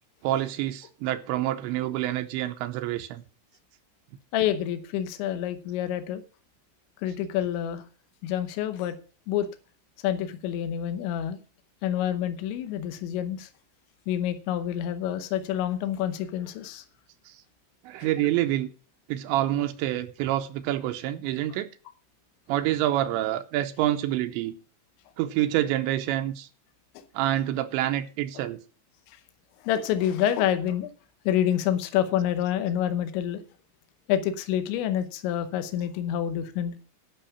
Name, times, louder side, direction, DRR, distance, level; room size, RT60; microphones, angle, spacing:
voice 1, 0.2-3.2 17.3-17.4 17.8-18.7 19.1-21.7 22.5-24.6 25.2-26.5 27.1-28.6, right 13 dB, 85° right, 3.0 m, -27 dB
voice 2, 4.3-6.2 7.0-7.8 8.2-9.0 9.3-9.5 10.0-11.4 11.8-13.5 14.1-16.8 27.0-27.1 29.6-30.9 31.3-33.4 34.1-36.7, left 10 dB, 85° left, 3.2 m, -27 dB
12.0 x 5.7 x 6.9 m
omnidirectional pair, 5.1 m